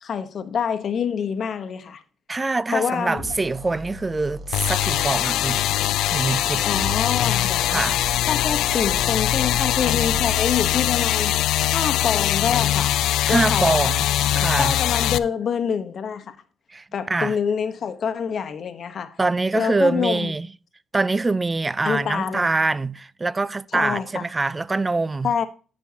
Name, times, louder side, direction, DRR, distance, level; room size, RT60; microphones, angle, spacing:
voice 1, 0.0-2.0 2.7-3.3 6.6-7.8 8.3-11.4 11.7-12.9 13.3-13.9 14.6-16.4 16.9-19.2 19.5-20.3 21.8-22.5 23.7-24.3 25.2-25.4, left 7 dB, 55° left, 1.0 m, -26 dB
voice 2, 2.3-5.6 6.1-6.7 7.7-8.0 13.2-14.0 14.4-14.8 16.7-17.4 19.2-20.5 20.9-25.3, right 3 dB, 20° right, 0.4 m, -24 dB
sound 1, 3.2-5.2 6.6-11.0, right 1 dB, 40° right, 1.1 m, -36 dB
sound 2, 4.5-15.2, left 13 dB, 85° left, 0.3 m, -22 dB
14.0 x 5.4 x 2.8 m
cardioid pair, 90°, 0 cm